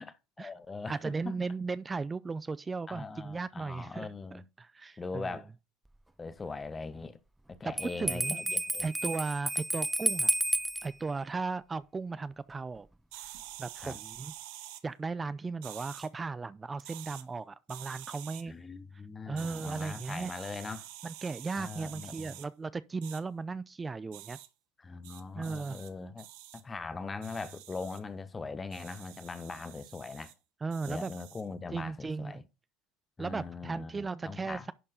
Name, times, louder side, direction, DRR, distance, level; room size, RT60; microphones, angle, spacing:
voice 1, 0.4-1.4 2.9-4.4 5.0-5.5 6.2-7.2 7.5-8.9 13.8-14.0 18.4-20.9 21.6-22.3 24.8-26.3 26.5-30.3 30.9-32.4 33.2-34.7, left 4 dB, 25° left, 1.0 m, -41 dB
voice 2, 0.9-5.4 8.0-8.5 8.8-10.3 10.8-12.9 13.6-14.3 14.8-18.5 19.3-20.3 21.0-24.4 25.4-25.8 30.6-31.1 31.7-32.4 33.2-34.7, right 4 dB, 25° right, 0.5 m, -36 dB
Bell, 7.8-10.9, right 1 dB, 10° right, 0.9 m, -31 dB
sound 1, 13.1-14.8 15.6-16.1 16.8-17.2 17.7-18.4 19.4-22.5 23.0-23.2 24.1-24.5 25.0-25.9 26.2-26.6 27.2-28.0 28.7-30.3 30.7-31.5, right 13 dB, 75° right, 1.1 m, -48 dB
11.0 x 4.5 x 4.9 m
hypercardioid pair, 75°, 0 cm